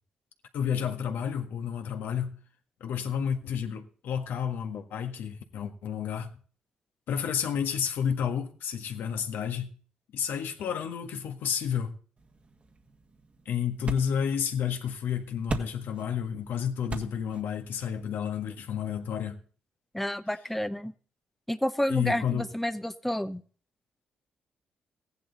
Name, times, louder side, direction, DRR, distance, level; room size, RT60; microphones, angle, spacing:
voice 1, 0.5-2.4 2.8-6.3 7.1-9.7 10.1-11.9 13.4-19.4 21.9-22.4, left 8 dB, 75° left, 1.6 m, -31 dB
sound 1, 12.2-19.3, right 3 dB, 40° right, 1.8 m, -41 dB
voice 2, 19.9-20.9 21.5-23.4, left 1 dB, 5° left, 0.9 m, -30 dB
15.0 x 10.5 x 4.1 m
cardioid pair, 70°, 3 cm